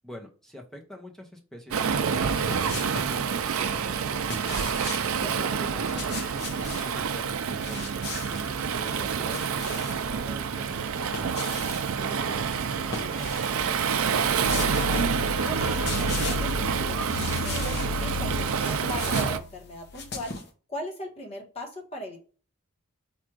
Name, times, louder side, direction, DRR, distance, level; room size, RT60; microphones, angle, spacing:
voice 1, 0.0-4.6 5.2-11.3 12.0-14.0, equal, ahead, 0 dB, 0.7 m, -45 dB
Waves surf, 1.7-19.4, right 6 dB, 80° right, 0.4 m, -28 dB
sound 1, 2.1-3.2 4.1-5.1 5.7-6.9 7.5-8.5 8.9-10.1 10.9-11.8 12.8-13.6 14.0-14.1 14.5-15.2 15.5-16.6 17.0-17.9 18.4-20.5, left 4 dB, 50° left, 0.9 m, -38 dB
sound 2, 14.4-20.4, left 5 dB, 70° left, 0.3 m, -34 dB
voice 2, 14.8-17.0 17.4-20.3 20.7-22.2, equal, 30° left, 1 dB, 1.1 m, -39 dB
4.5 x 2.5 x 4.5 m, 0.38 s
head